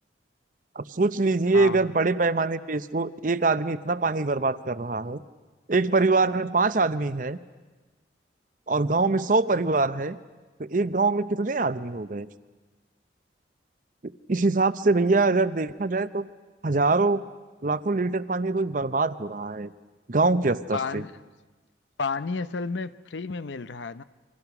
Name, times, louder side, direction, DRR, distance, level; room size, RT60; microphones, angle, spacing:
voice 1, 0.8-5.2 5.7-7.4 8.7-10.2 10.6-12.3 14.3-16.3 16.6-17.2 17.6-19.7 20.1-21.0, right 3 dB, 45° right, 0.7 m, -24 dB
voice 2, 1.5-1.9 20.7-21.2 22.0-24.0, left 4 dB, 80° left, 0.7 m, -31 dB
28.5 x 25.0 x 6.0 m
head